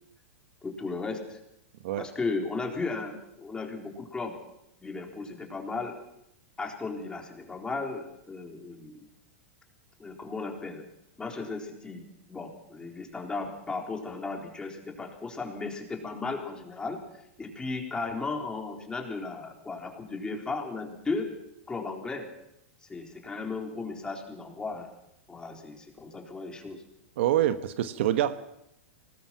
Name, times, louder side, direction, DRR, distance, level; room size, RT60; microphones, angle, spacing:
voice 1, 0.6-1.4 2.0-4.4 4.8-6.0 6.6-9.1 10.0-10.8 11.2-17.0 17.4-21.3 21.7-22.3 22.8-24.9 25.3-26.8, left 3 dB, 10° left, 2 dB, 4.0 m, -35 dB
voice 2, 27.2-28.4, right 12 dB, 65° right, 11 dB, 1.3 m, -26 dB
24.5 x 19.5 x 5.9 m, 0.79 s
hypercardioid pair, 120°, 7 cm